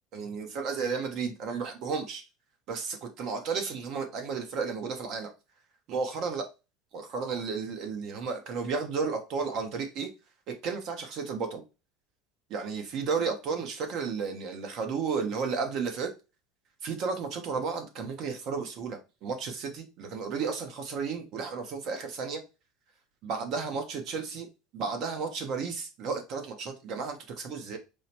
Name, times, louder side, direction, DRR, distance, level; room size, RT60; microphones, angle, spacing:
voice 1, 0.1-2.3 2.7-5.3 5.9-6.5 6.9-10.1 10.5-11.6 12.5-16.1 16.8-22.4 23.2-24.5 24.7-27.8, right 5 dB, 50° right, 0.8 m, -33 dB
4.7 x 2.0 x 2.9 m
supercardioid pair, 135°, 0 cm